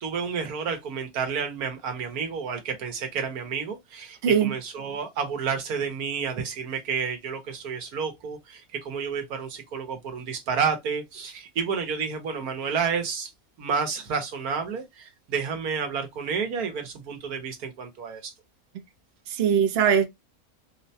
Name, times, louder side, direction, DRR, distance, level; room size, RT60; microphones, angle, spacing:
voice 1, 0.0-13.3 13.6-18.3, right 6 dB, 85° right, 1.4 m, -30 dB
voice 2, 4.2-4.5 19.3-20.1, right 7 dB, 50° right, 0.8 m, -21 dB
4.8 x 2.2 x 2.7 m
omnidirectional pair, 1.5 m